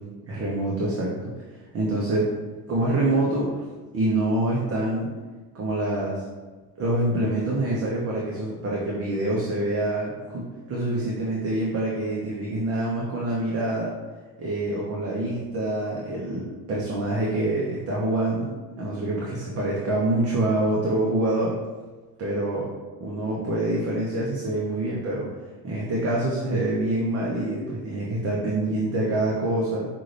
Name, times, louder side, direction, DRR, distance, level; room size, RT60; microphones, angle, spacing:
voice 1, 0.2-2.3 2.7-3.6 3.9-5.1 5.5-6.2 6.8-13.9 14.4-18.5 18.8-21.5 22.2-22.7 23.0-25.3 25.6-29.9, right 1 dB, 35° right, -4 dB, 0.9 m, -26 dB
5.6 x 2.6 x 3.3 m, 1.3 s
cardioid pair, 110°, 41 cm